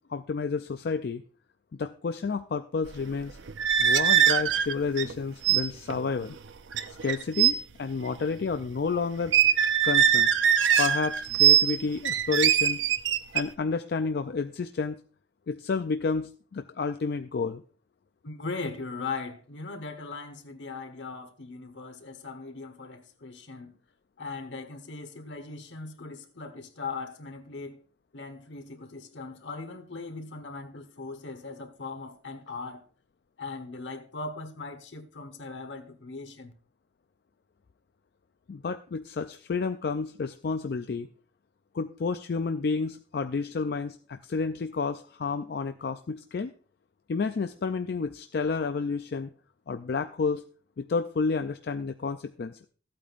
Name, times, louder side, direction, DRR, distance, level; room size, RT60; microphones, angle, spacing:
voice 1, 0.1-1.2 1.7-3.4 3.8-6.4 7.0-9.4 9.8-10.3 10.8-12.8 13.3-15.0 15.5-17.6 38.5-41.1 41.7-46.5 47.1-49.3 49.7-50.4 50.8-52.6, left 4 dB, 55° left, 0.4 m, -30 dB
sound 1, 3.5-5.1 5.4-5.6 5.9-6.1 6.7-7.6 9.3-11.8 12.1-13.4, right 9 dB, 90° right, 0.7 m, -22 dB
voice 2, 18.2-23.7 24.2-27.8 28.1-32.9 33.4-36.5, left 3 dB, 75° left, 1.3 m, -39 dB
14.0 x 8.6 x 2.5 m
head